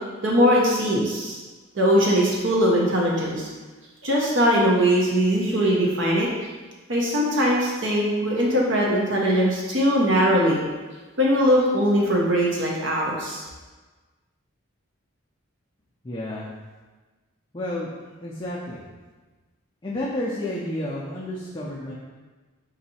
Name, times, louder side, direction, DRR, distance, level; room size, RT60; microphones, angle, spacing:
voice 1, 0.2-1.4 1.7-3.5 4.0-6.3 6.9-10.6 11.2-13.4, equal, 60° right, -3 dB, 0.7 m, -21 dB
voice 2, 16.0-16.5 17.5-17.9 18.2-18.8 19.8-21.9, left 1 dB, 20° left, -7 dB, 0.4 m, -30 dB
4.0 x 2.7 x 4.1 m, 1.3 s
head